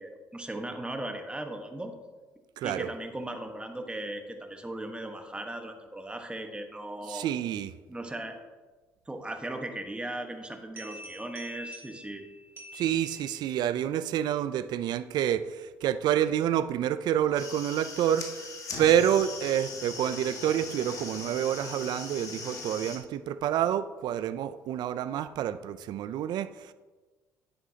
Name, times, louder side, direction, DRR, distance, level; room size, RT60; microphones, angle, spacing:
voice 1, 0.0-1.9 2.6-7.3 7.9-8.3 9.1-12.2, right 1 dB, 15° right, 5 dB, 1.3 m, -37 dB
voice 2, 2.6-2.9 7.1-7.7 12.7-18.3 18.8-26.7, right 10 dB, 65° right, 13 dB, 0.4 m, -28 dB
sound 1, 10.8-13.7, left 1 dB, 30° right, 2.9 m, -46 dB
sound 2, 17.2-23.0, left 4 dB, 45° left, 1.6 m, -40 dB
9.7 x 7.9 x 2.8 m, 1.3 s
supercardioid pair, 65°, 8 cm